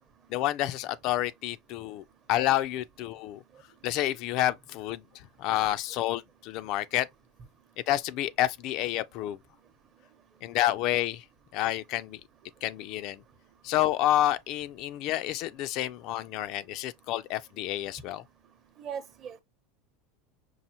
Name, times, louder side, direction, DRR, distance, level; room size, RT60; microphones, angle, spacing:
voice 1, 0.3-3.4 3.8-7.1 7.9-9.4 10.4-11.2 11.5-12.2 12.6-13.2 13.6-18.2, left 14 dB, 50° left, 0.3 m, -29 dB
voice 2, 18.8-19.4, right 7 dB, 35° right, 0.7 m, -39 dB
5.4 x 2.5 x 2.8 m
supercardioid pair, 155°, 0 cm